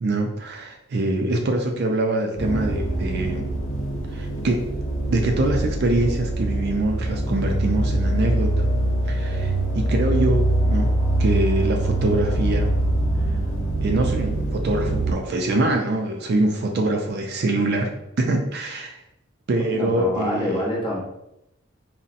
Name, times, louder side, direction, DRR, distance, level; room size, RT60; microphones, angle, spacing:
voice 1, 0.0-3.5 4.1-4.7 5.1-8.7 9.1-12.7 13.8-17.9 18.2-19.0 19.5-20.7, right 2 dB, 55° right, 3 dB, 0.4 m, -24 dB
sound 1, 2.4-15.1, right 1 dB, 85° left, 0.8 m, -24 dB
voice 2, 19.7-21.0, left 1 dB, 25° left, -4 dB, 0.8 m, -26 dB
3.9 x 2.1 x 2.5 m, 0.85 s
head